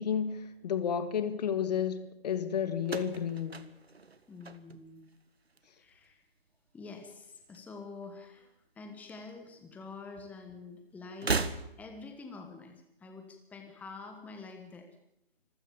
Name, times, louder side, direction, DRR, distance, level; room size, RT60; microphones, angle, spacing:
voice 1, 0.0-3.7, left 8 dB, 40° left, 12 dB, 1.8 m, -32 dB
sound 1, 2.8-5.2 5.5-6.1 7.1-8.1 8.4-8.5 9.6-9.7 11.1-12.1, right 4 dB, 90° right, 1.7 m, -36 dB
voice 2, 4.3-5.1 5.7-6.2 6.7-11.5 11.8-14.9, left 4 dB, 5° left, 5 dB, 1.4 m, -47 dB
25.0 x 15.5 x 7.2 m, 0.82 s
figure-of-eight pair, 150°, 30 cm